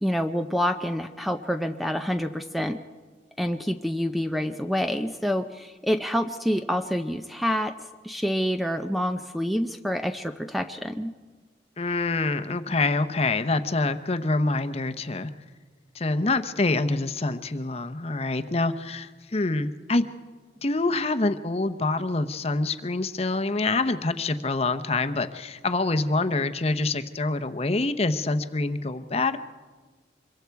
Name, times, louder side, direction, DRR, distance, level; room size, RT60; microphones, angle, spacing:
voice 1, 0.0-2.8 3.4-7.7 8.0-11.1, equal, ahead, 7 dB, 0.5 m, -27 dB
voice 2, 11.8-15.3 15.9-20.1 20.6-29.4, left 3 dB, 35° left, 10 dB, 0.8 m, -26 dB
26.0 x 22.5 x 4.7 m, 1.4 s
head